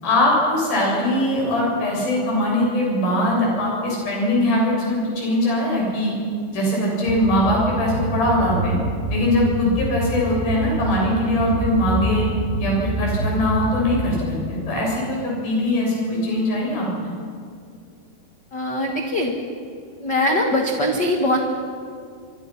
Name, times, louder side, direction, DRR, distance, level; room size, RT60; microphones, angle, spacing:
voice 1, 0.0-6.1 6.5-8.8 9.1-12.3 12.6-17.1, left 1 dB, 55° left, -3 dB, 8.7 m, -21 dB
sound 1, 7.1-14.1, right 1 dB, 85° right, 7.3 m, -27 dB
voice 2, 18.5-19.3 20.0-21.4, left 1 dB, 80° left, 2 dB, 0.9 m, -21 dB
25.0 x 24.5 x 6.0 m, 2.3 s
omnidirectional pair, 5.1 m